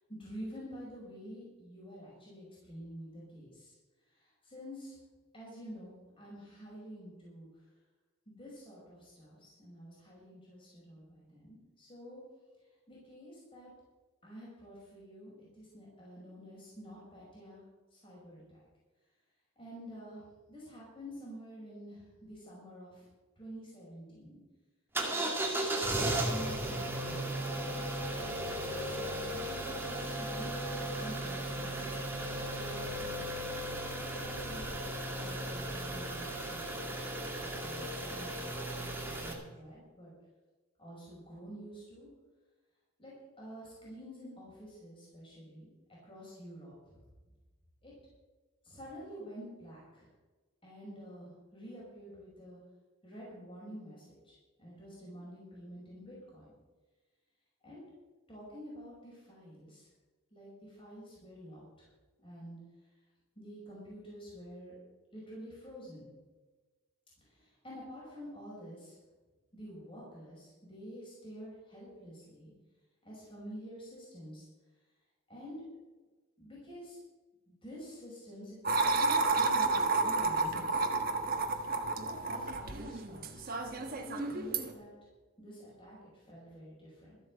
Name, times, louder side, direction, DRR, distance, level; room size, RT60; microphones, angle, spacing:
voice 1, 0.1-3.7 4.2-5.0 5.3-7.5 8.3-12.2 12.9-13.7 14.2-17.6 17.9-18.6 19.6-20.2 20.5-23.1 23.4-24.4 25.1-25.3 26.2-27.8 28.5-28.7 29.3-33.2 33.9-37.0 37.4-40.1 40.8-42.1 43.0-45.7 46.0-46.7 47.8-47.9 48.6-50.1 50.6-52.6 53.0-56.5 57.6-57.8 58.3-59.9 60.3-61.6 62.2-62.6 63.4-64.8 65.1-66.1 67.3-69.0 69.5-72.5 73.0-74.4 75.3-75.6 76.4-77.0 77.5-80.9 82.0-83.4 83.9-84.9 85.4-86.0 86.3-87.1, equal, 25° left, -6 dB, 5.7 m, -48 dB
sound 1, 24.9-39.3, right 1 dB, 10° right, 2.2 m, -36 dB
sound 2, 78.7-84.7, right 3 dB, 45° right, 1.4 m, -31 dB
13.5 x 8.9 x 7.5 m, 1.3 s
head